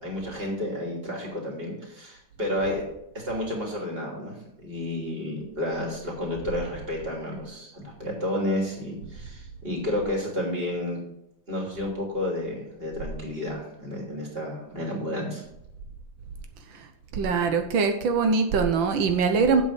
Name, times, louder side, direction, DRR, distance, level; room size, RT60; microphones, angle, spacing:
voice 1, 0.0-2.8 3.1-11.0 11.5-15.4, left 1 dB, 30° right, -2 dB, 3.0 m, -31 dB
voice 2, 17.1-19.6, right 5 dB, 85° right, 6 dB, 1.7 m, -23 dB
8.2 x 6.4 x 7.3 m, 0.80 s
omnidirectional pair, 2.1 m